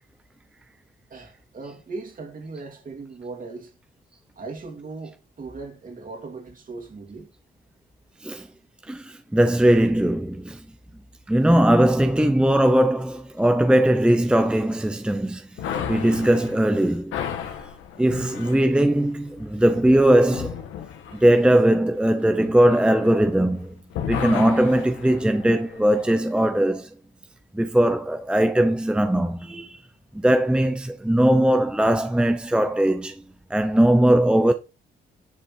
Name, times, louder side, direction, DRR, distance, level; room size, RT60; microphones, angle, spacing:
voice 1, 1.1-3.7 4.4-7.3, right 3 dB, 45° right, 2.9 m, -38 dB
voice 2, 8.9-10.6 11.3-17.2 18.0-20.6 21.2-23.8 24.0-26.9 27.5-29.8 30.1-33.2 33.5-34.5, right 1 dB, 5° right, 0.7 m, -20 dB
sound 1, 15.6-23.6 23.9-26.2, left 8 dB, 90° left, 1.8 m, -34 dB
10.5 x 5.5 x 4.4 m
cardioid pair, 90°, 20 cm